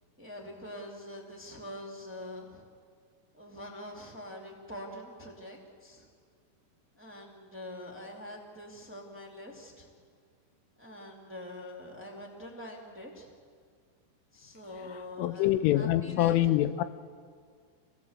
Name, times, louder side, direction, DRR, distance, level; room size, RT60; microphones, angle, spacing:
voice 1, 0.2-2.6 3.3-6.1 6.9-9.9 10.8-13.3 14.3-16.7, left 1 dB, 5° right, 1.2 m, -45 dB
voice 2, 14.9-16.8, left 13 dB, 80° left, 3.1 m, -26 dB
27.0 x 18.5 x 7.5 m
omnidirectional pair, 5.8 m